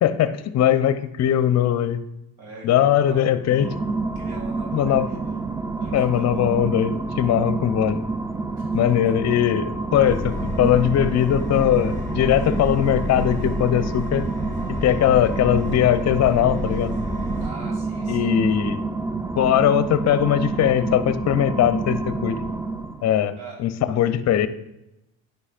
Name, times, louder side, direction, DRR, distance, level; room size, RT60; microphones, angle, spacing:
voice 1, 0.0-2.0 2.6-3.7 4.7-5.1 5.9-8.0 8.7-14.2 14.8-16.9 18.1-18.8 19.4-22.4 23.0-23.3 23.6-24.5, left 10 dB, 40° left, 13 dB, 0.6 m, -20 dB
voice 2, 2.4-3.7 4.2-5.4 5.8-6.5 8.6-9.0 17.4-18.6 23.3-24.0, right 3 dB, 75° right, 0 dB, 2.3 m, -43 dB
sound 1, 3.4-23.2, right 3 dB, 10° right, 0.3 m, -28 dB
Subway metro underground, 10.0-17.5, left 1 dB, 10° left, 2.3 m, -31 dB
9.7 x 5.4 x 2.4 m, 0.88 s
hypercardioid pair, 65°, 42 cm